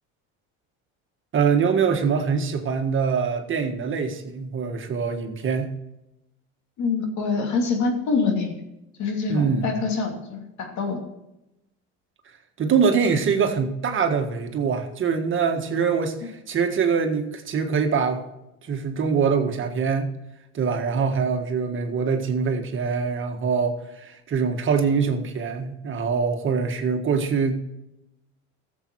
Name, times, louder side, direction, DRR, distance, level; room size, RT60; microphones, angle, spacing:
voice 1, 1.3-5.7 9.3-9.8 12.6-18.2 18.6-20.1 20.5-27.6, right 6 dB, 40° right, 5 dB, 1.6 m, -24 dB
voice 2, 6.8-8.5 9.0-11.0, left 4 dB, 60° left, 3 dB, 2.8 m, -25 dB
14.5 x 7.6 x 4.7 m, 0.89 s
supercardioid pair, 105°, 32 cm